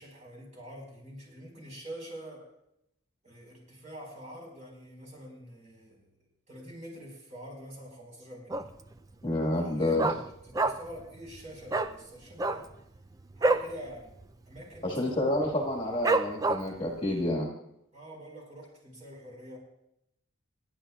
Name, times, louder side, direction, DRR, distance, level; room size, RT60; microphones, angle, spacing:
voice 1, 0.0-2.5 3.2-6.1 6.5-8.6 9.5-12.7 13.3-14.1 14.4-15.2 17.9-19.6, equal, 35° right, -1 dB, 4.8 m, -45 dB
Dog, 8.5-8.9 9.2-9.3 9.6-11.0 11.3-11.4 11.7-11.9 12.3-13.7 14.1-14.2 14.5-14.9 15.4-15.5 16.0-16.8 17.3-17.4, right 2 dB, 15° right, 0.4 m, -27 dB
voice 2, 9.2-10.1 14.8-17.5, left 1 dB, 25° left, 0 dB, 1.7 m, -29 dB
29.5 x 10.0 x 2.4 m, 0.80 s
head